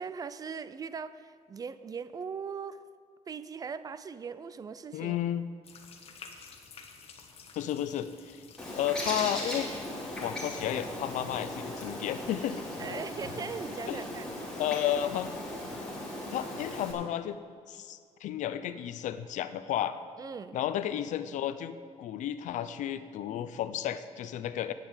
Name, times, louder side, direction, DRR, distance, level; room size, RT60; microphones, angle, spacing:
voice 1, 0.0-2.8 3.3-5.2 12.8-14.3 20.2-20.6, right 6 dB, 30° right, 14 dB, 0.4 m, -39 dB
voice 2, 4.9-5.5 7.6-8.4 8.7-9.7 10.2-12.6 12.9-13.0 13.9-14.0 14.6-15.4 16.3-17.4 17.7-20.0 20.5-24.7, left 11 dB, 85° left, 12 dB, 0.6 m, -32 dB
sound 1, 5.6-12.4, left 5 dB, 55° left, 1.2 m, -53 dB
Bird, 8.6-16.9, left 1 dB, 5° left, 2.7 m, -38 dB
9.2 x 8.0 x 8.9 m, 2.1 s
cardioid pair, 145°, 12 cm